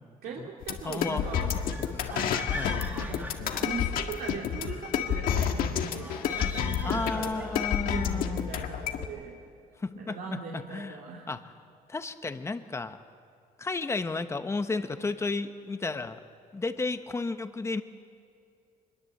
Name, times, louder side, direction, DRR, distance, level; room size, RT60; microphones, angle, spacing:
voice 1, 0.2-1.7 2.1-2.5 2.9-9.4 9.9-11.3, right 5 dB, 85° right, -2 dB, 2.7 m, -40 dB
sound 1, 0.6-9.1, left 8 dB, 80° left, 1.7 m, -30 dB
voice 2, 0.8-1.3 1.9-2.1 2.5-2.7 6.8-8.5 9.8-11.0 11.3-11.4 11.9-13.0 13.6-16.2 16.5-17.8, left 3 dB, 20° left, 9 dB, 1.1 m, -33 dB
sound 2, 1.2-4.3 5.9-7.9, right 1 dB, 10° right, 1.7 m, -42 dB
25.5 x 21.5 x 7.8 m, 2.4 s
cardioid pair, 145°, 15 cm